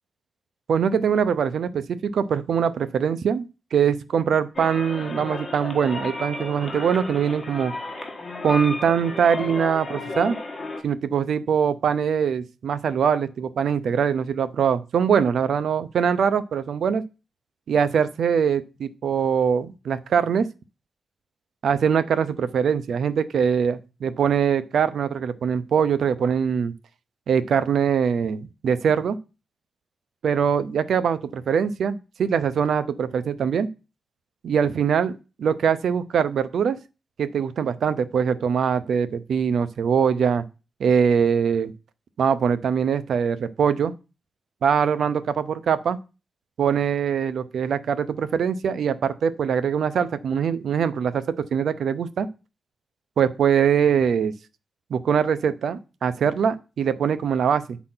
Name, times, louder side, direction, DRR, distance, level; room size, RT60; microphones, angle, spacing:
voice 1, 0.7-7.7 8.4-10.4 10.8-17.0 17.7-20.5 21.6-26.7 27.3-29.2 30.2-33.7 34.4-36.8 37.2-40.4 40.8-41.7 42.2-43.9 44.6-46.0 46.6-52.3 53.2-54.3 54.9-57.8, right 7 dB, 80° right, 13 dB, 0.7 m, -22 dB
sound 1, 4.5-10.8, left 2 dB, 30° left, 1.6 m, -33 dB
8.8 x 4.1 x 5.7 m, 0.30 s
wide cardioid pair, 115°, 0 cm